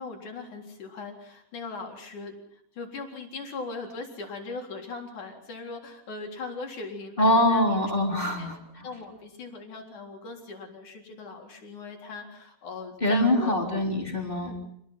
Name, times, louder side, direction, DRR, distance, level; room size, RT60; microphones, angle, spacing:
voice 1, 0.0-2.3 2.7-8.5 8.8-13.7 14.4-14.6, left 3 dB, 50° left, 2 dB, 5.1 m, -39 dB
voice 2, 7.2-8.9 13.0-14.6, left 1 dB, 15° left, 1 dB, 3.8 m, -24 dB
27.0 x 20.5 x 5.8 m, 0.72 s
omnidirectional pair, 4.4 m